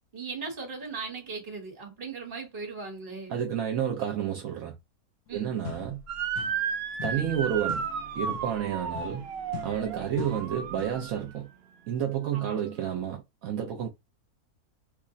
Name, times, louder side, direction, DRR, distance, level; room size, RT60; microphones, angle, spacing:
voice 1, 0.1-3.4 5.3-5.6 12.3-12.6, right 4 dB, 35° right, 1.6 m, -38 dB
voice 2, 3.3-4.8 5.3-6.0 7.0-7.9 8.1-9.2 9.6-11.5 11.9-13.9, right 9 dB, 70° right, 1.1 m, -30 dB
sound 1, 5.3-5.4 5.6-6.7 7.0-11.1, left 8 dB, 65° left, 0.9 m, -42 dB
Motor vehicle (road) / Siren, 6.1-11.3, right 6 dB, 55° right, 0.7 m, -33 dB
3.2 x 2.4 x 3.8 m
omnidirectional pair, 1.6 m